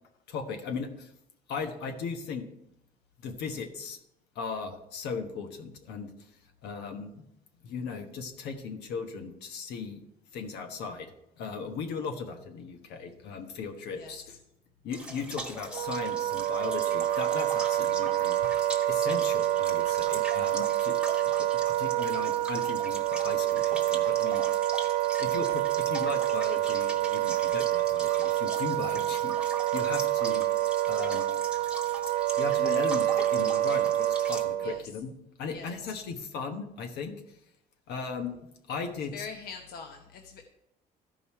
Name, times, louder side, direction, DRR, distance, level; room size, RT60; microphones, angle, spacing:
voice 1, 0.3-1.1 1.5-2.5 3.2-4.0 4.3-6.1 6.6-7.2 7.6-10.0 10.3-11.1 11.4-14.4 14.8-18.6 18.9-21.0 21.4-24.4 25.2-30.5 30.8-31.4 32.4-35.1 35.4-37.1 37.9-38.4 38.7-39.3, left 5 dB, 80° left, 5 dB, 1.3 m, -37 dB
sound 1, 14.9-34.4, right 2 dB, 5° right, 1.2 m, -42 dB
Wind instrument woodwind instrument, 15.7-34.8, right 13 dB, 55° right, 0.5 m, -27 dB
voice 2, 39.1-40.4, left 5 dB, 65° left, 3 dB, 1.0 m, -43 dB
13.0 x 5.4 x 4.4 m, 0.81 s
cardioid pair, 110°, 17 cm